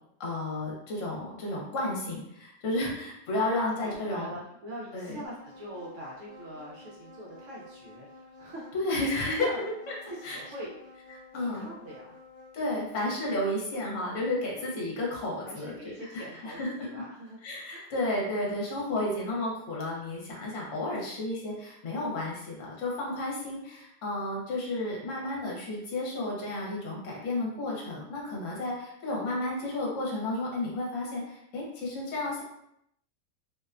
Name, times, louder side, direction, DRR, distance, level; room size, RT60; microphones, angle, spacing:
voice 1, 0.2-4.3 4.9-5.1 8.7-9.9 10.2-10.4 11.3-11.7 12.5-16.7 17.4-32.4, left 2 dB, 65° left, -3 dB, 1.1 m, -32 dB
voice 2, 3.8-8.1 8.4-8.7 9.0-9.6 10.1-10.7 11.3-12.2 15.4-17.4 17.7-17.9, equal, 65° right, -4 dB, 0.8 m, -43 dB
sound 1, 5.2-12.7, left 2 dB, 30° right, 0.8 m, -51 dB
2.6 x 2.1 x 2.4 m, 0.78 s
omnidirectional pair, 1.5 m